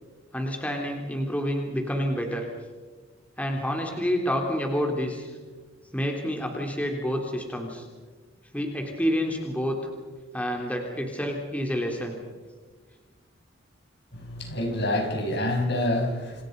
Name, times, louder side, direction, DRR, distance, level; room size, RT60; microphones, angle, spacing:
voice 1, 0.3-2.5 3.4-5.4 5.9-7.9 8.5-9.8 10.3-12.2, equal, 5° left, 1 dB, 3.3 m, -28 dB
voice 2, 14.1-16.4, left 1 dB, 60° left, 3 dB, 5.8 m, -27 dB
28.5 x 28.5 x 5.4 m, 1.4 s
head